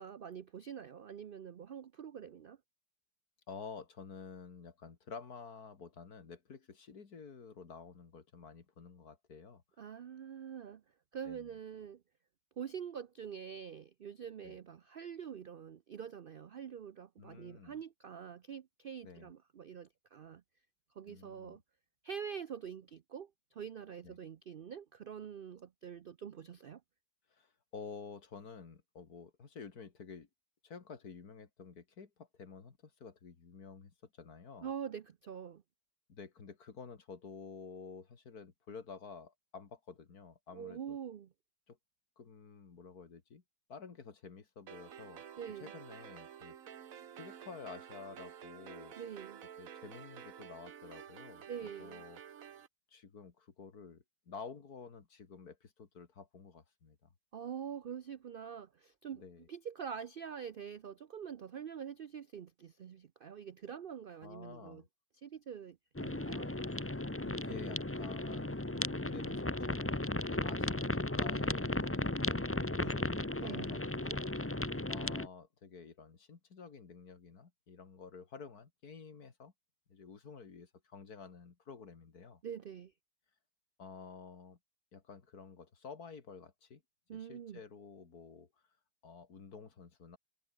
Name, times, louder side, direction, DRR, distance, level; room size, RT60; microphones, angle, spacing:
voice 1, 0.0-2.6 9.8-10.8 11.1-12.0 12.6-20.4 21.0-21.6 22.0-26.8 34.6-35.6 40.5-41.3 45.4-45.7 49.0-49.4 51.5-52.0 57.3-59.2 59.5-64.8 65.2-66.5 73.4-73.8 82.4-82.9 87.1-87.6, right 8 dB, 75° right, 0.5 m, -45 dB
voice 2, 3.5-9.6 11.2-11.5 14.4-14.6 17.2-17.8 19.0-19.3 21.1-21.6 24.0-24.2 27.3-30.3 30.6-34.7 36.1-41.0 41.7-41.8 42.2-43.4 43.7-45.2 45.6-46.6 47.1-49.0 49.6-52.2 52.9-57.1 59.1-59.5 64.2-64.9 67.3-74.3 74.9-79.5 79.9-82.4 83.8-84.6 84.9-86.8 87.1-88.5 89.0-90.2, left 5 dB, 65° left, 2.7 m, -51 dB
sound 1, 44.7-52.7, right 9 dB, 60° right, 1.4 m, -51 dB
sound 2, 66.0-75.3, left 1 dB, 10° left, 1.0 m, -35 dB
omnidirectional pair, 1.7 m